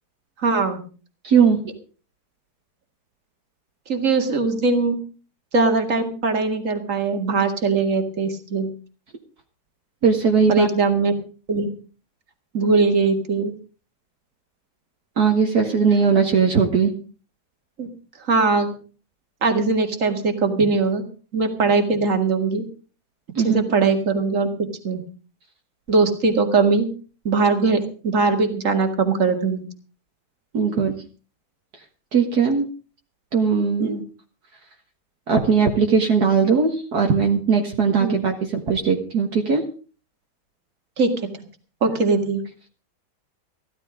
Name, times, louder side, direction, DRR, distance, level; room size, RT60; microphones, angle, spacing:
voice 1, 0.4-0.8 3.9-5.0 5.5-8.7 10.5-11.1 11.5-11.7 12.5-13.5 17.8-17.9 18.3-18.7 19.4-21.0 21.3-22.7 23.4-24.5 24.8-25.0 25.9-26.9 27.2-29.6 33.8-34.0 38.0-38.2 41.0-41.4 41.8-42.4, right 4 dB, 50° right, 6 dB, 2.4 m, -20 dB
voice 2, 1.2-1.6 10.0-10.7 15.2-16.9 23.4-23.6 30.5-30.9 32.1-32.7 33.3-34.0 35.3-39.6, right 5 dB, 65° right, 2 dB, 2.2 m, -19 dB
15.5 x 13.0 x 5.0 m, 0.37 s
omnidirectional pair, 1.8 m